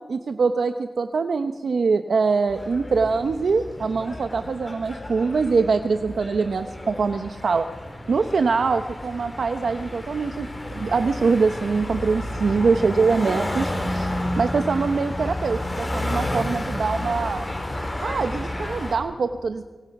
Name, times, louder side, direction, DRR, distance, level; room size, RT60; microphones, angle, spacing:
voice 1, 0.1-7.7 8.1-10.5 10.7-14.1 14.4-17.5 18.0-19.6, right 4 dB, 80° right, 8 dB, 0.9 m, -23 dB
sound 1, 2.5-18.9, left 1 dB, 25° left, 4.8 m, -31 dB
25.0 x 24.0 x 6.0 m, 1.4 s
wide cardioid pair, 120°, 0 cm